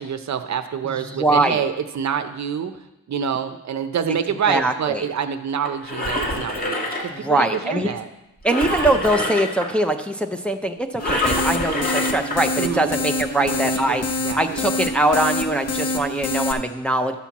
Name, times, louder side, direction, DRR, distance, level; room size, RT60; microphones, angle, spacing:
voice 1, 0.0-2.7 3.1-8.1 12.6-12.9 13.4-14.0 14.2-14.6, right 7 dB, 55° right, 9 dB, 0.7 m, -27 dB
voice 2, 0.8-1.6 4.5-5.1 7.1-7.9 8.4-14.0 14.3-17.2, right 1 dB, 5° left, 3 dB, 0.5 m, -22 dB
Engine, 5.6-7.6 8.5-9.7 11.0-12.4 13.0-13.2, left 1 dB, 25° left, 1.8 m, -26 dB
sound 1, 11.0-16.5, left 2 dB, 50° left, 0.8 m, -26 dB
12.0 x 4.4 x 7.1 m, 0.95 s
wide cardioid pair, 150°, 33 cm